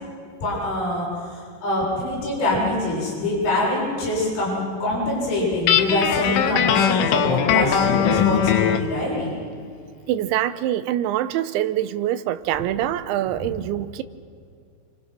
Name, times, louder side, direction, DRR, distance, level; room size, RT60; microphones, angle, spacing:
voice 1, 0.4-9.3, left 1 dB, 55° left, -7 dB, 9.1 m, -24 dB
Guitar, 5.7-8.9, left 9 dB, 90° left, 3.6 m, -20 dB
voice 2, 10.1-14.0, right 12 dB, 80° right, 11 dB, 3.1 m, -24 dB
28.5 x 25.5 x 6.2 m, 2.3 s
omnidirectional pair, 5.4 m